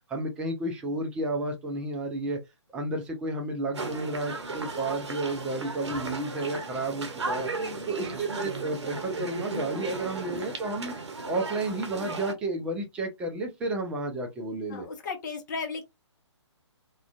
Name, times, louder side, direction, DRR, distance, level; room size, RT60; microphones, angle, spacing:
voice 1, 0.1-2.4 2.7-7.5 7.9-10.9 11.3-14.9, right 2 dB, 5° right, 0.4 m, -32 dB
sound 1, 3.7-12.3, right 3 dB, 65° right, 0.7 m, -35 dB
voice 2, 7.6-7.9 14.7-15.8, left 4 dB, 40° left, 0.7 m, -36 dB
2.3 x 2.2 x 2.4 m
figure-of-eight pair, 135°, 15 cm